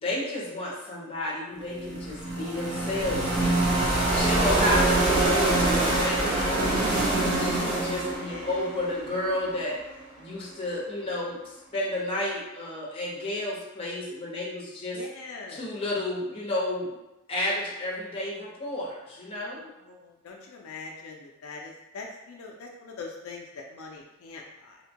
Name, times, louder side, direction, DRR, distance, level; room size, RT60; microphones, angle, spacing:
voice 1, 0.0-3.5 4.1-7.0 7.4-9.8 10.2-11.4 11.7-15.0 15.5-16.9 17.3-19.7, left 1 dB, 25° left, -5 dB, 0.8 m, -31 dB
sound 1, 1.7-9.7, right 2 dB, 35° right, 0.6 m, -25 dB
voice 2, 5.1-5.4 8.2-8.9 14.9-15.6 19.6-24.8, left 4 dB, 85° left, 0 dB, 0.4 m, -42 dB
2.8 x 2.2 x 2.8 m, 0.99 s
head